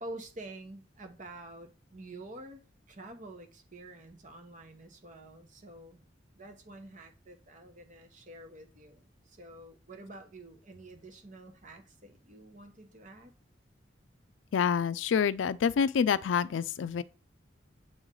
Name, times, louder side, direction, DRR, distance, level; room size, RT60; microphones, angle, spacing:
voice 1, 0.0-2.6 2.9-6.0 6.3-13.3, right 1 dB, 40° right, 1.1 m, -48 dB
voice 2, 14.5-17.0, left 7 dB, 85° left, 0.4 m, -27 dB
7.9 x 3.2 x 3.7 m
head